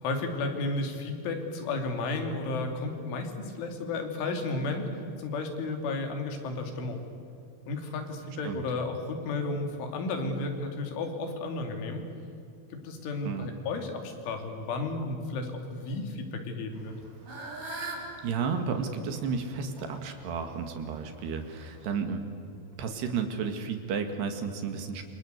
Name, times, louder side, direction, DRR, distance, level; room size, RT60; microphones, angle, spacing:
voice 1, 0.0-4.9 5.2-7.0 7.7-12.0 12.7-16.9, left 3 dB, 85° left, 4 dB, 5.3 m, -33 dB
Fowl / Bird, 16.7-22.0, right 2 dB, 45° right, 5.6 m, -43 dB
voice 2, 17.8-22.2 22.8-25.1, right 5 dB, 65° right, 6 dB, 3.9 m, -32 dB
28.0 x 26.0 x 8.2 m, 2.6 s
omnidirectional pair, 5.4 m